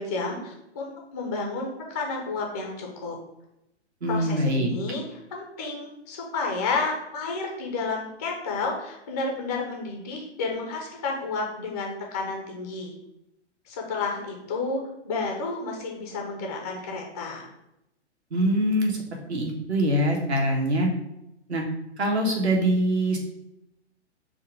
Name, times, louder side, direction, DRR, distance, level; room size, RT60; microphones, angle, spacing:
voice 1, 0.0-3.2 4.1-12.9 13.7-17.5, left 3 dB, 15° left, 0 dB, 0.3 m, -31 dB
voice 2, 4.0-4.7 18.3-19.0 19.3-20.9 21.5-21.6 22.0-23.2, right 1 dB, 65° right, 0 dB, 1.4 m, -23 dB
4.4 x 2.5 x 4.7 m, 0.88 s
figure-of-eight pair, 120°, 35 cm